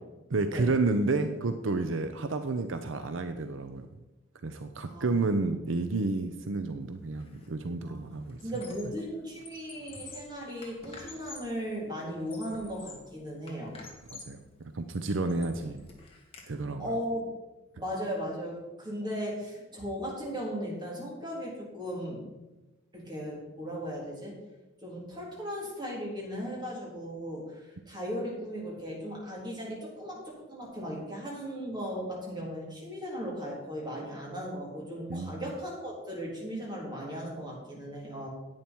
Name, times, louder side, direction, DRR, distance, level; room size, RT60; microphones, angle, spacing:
voice 1, 0.3-3.9 4.4-8.4 14.1-14.4 14.7-15.9 16.5-16.9 35.1-35.4, right 3 dB, 70° right, 8 dB, 0.6 m, -30 dB
voice 2, 4.9-5.3 7.8-8.0 8.4-13.7 15.3-15.5 16.8-17.3 17.7-22.2 22.9-24.4 24.8-38.3, equal, 20° right, -4 dB, 3.7 m, -37 dB
Squeak, 7.2-7.5 7.8-9.0 9.3-11.6 12.1-13.1 13.5-14.4 14.9-16.5, left 3 dB, 30° left, 2.1 m, -49 dB
10.5 x 9.0 x 4.5 m, 1.1 s
head